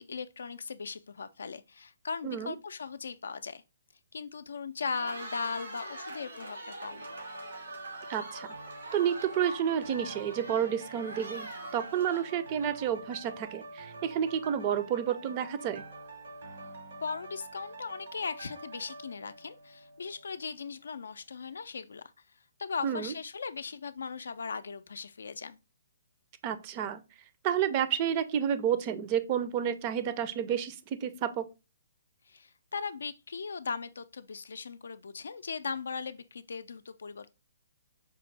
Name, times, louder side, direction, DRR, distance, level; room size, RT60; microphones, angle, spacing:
voice 1, 0.0-3.6 4.1-7.0 17.0-22.0 22.6-25.6 32.3-37.3, left 5 dB, 80° left, 0.3 m, -38 dB
voice 2, 2.2-2.5 8.1-8.5 8.9-15.8 22.8-23.1 26.4-27.0 27.4-31.4, right 9 dB, 35° right, 0.4 m, -30 dB
Cheering, 4.8-13.0, right 1 dB, 85° right, 2.4 m, -44 dB
sound 1, 6.8-20.5 21.0-21.1, right 3 dB, 70° right, 1.0 m, -46 dB
5.0 x 2.1 x 3.2 m
hypercardioid pair, 145°, 0 cm